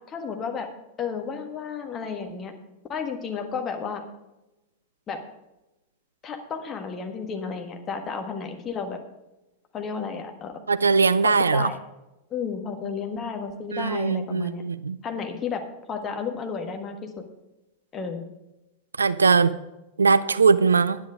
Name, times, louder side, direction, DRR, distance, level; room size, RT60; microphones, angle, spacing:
voice 1, 0.1-0.7 1.0-2.5 2.9-4.0 5.1-5.2 6.2-9.0 9.7-10.5 11.2-11.8 12.3-14.6 15.0-15.6 15.9-17.1 17.9-18.2, left 5 dB, 25° left, 4 dB, 1.5 m, -32 dB
voice 2, 10.7-11.7 13.7-15.0 19.0-19.6 20.0-21.0, right 5 dB, 75° right, 16 dB, 0.4 m, -20 dB
10.0 x 9.9 x 5.0 m, 0.98 s
figure-of-eight pair, 90°, 0 cm